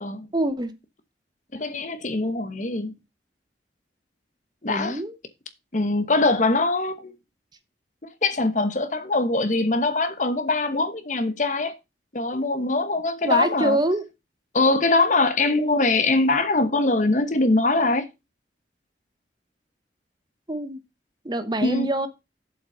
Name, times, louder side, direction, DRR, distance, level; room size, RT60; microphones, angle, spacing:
voice 1, 0.3-0.7 4.7-5.1 13.2-14.1 20.5-20.8 21.2-22.1, right 1 dB, 25° right, 0.9 m, -25 dB
voice 2, 1.5-2.9 4.6-5.0 5.7-7.1 8.2-11.7 12.1-13.8 14.5-18.0 21.6-21.9, left 2 dB, 45° left, 1.0 m, -22 dB
7.5 x 5.5 x 5.6 m
head